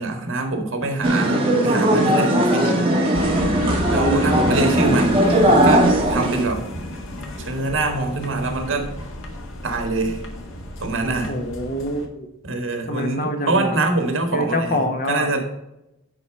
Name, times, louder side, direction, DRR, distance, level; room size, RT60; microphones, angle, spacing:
voice 1, 0.0-2.8 3.9-6.6 7.4-8.9 9.6-10.2 10.8-11.3 12.4-14.7 15.1-15.4, right 2 dB, 75° right, 4 dB, 1.7 m, -24 dB
sound 1, 1.0-6.4, right 1 dB, 25° right, 1.9 m, -18 dB
sound 2, 3.1-12.1, equal, 75° left, 1.5 m, -32 dB
voice 2, 4.8-5.2 11.2-12.3 12.9-13.8 14.3-15.3, left 1 dB, 45° left, 5 dB, 1.2 m, -26 dB
9.8 x 4.2 x 5.4 m, 0.89 s
head